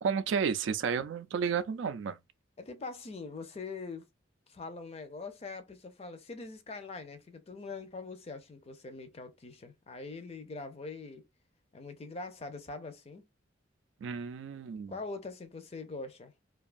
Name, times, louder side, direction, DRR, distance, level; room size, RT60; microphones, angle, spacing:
voice 1, 0.0-2.2 14.0-15.0, right 6 dB, 75° right, 0.3 m, -32 dB
voice 2, 2.6-4.1 4.5-11.3 11.7-13.3 14.9-16.3, left 3 dB, 35° left, 0.5 m, -43 dB
2.5 x 2.3 x 2.4 m
head